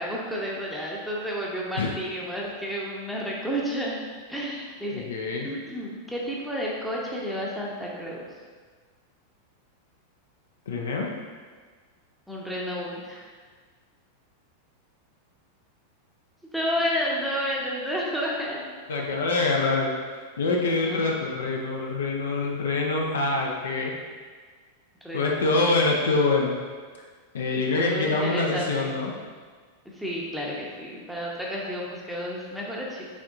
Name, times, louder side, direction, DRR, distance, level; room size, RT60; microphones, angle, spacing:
voice 1, 0.0-4.0 4.3-5.0 5.4-8.2 12.3-13.3 16.5-18.7 20.7-21.1 25.0-25.5 27.5-28.9 29.9-33.1, equal, ahead, -4 dB, 0.7 m, -31 dB
voice 2, 4.9-5.5 10.7-11.1 18.9-19.9 20.4-23.9 25.1-26.6 27.3-29.1, left 3 dB, 65° left, 0 dB, 0.5 m, -25 dB
5.9 x 3.6 x 2.5 m, 1.5 s
figure-of-eight pair, 90°, 0 cm